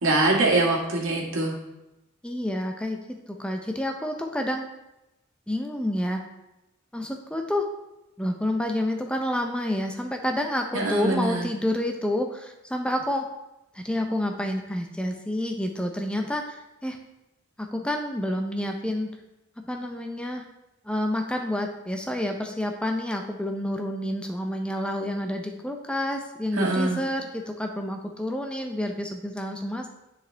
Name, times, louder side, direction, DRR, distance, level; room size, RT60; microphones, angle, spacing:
voice 1, 0.0-1.5 10.7-11.5 26.5-27.0, right 2 dB, 80° right, -2 dB, 1.8 m, -23 dB
voice 2, 2.2-3.0 3.3-4.6 5.5-6.2 6.9-7.7 8.2-13.3 13.8-17.0 17.6-19.1 19.7-20.4 20.9-29.9, left 1 dB, 5° left, 3 dB, 0.6 m, -29 dB
9.8 x 4.9 x 3.4 m, 0.94 s
head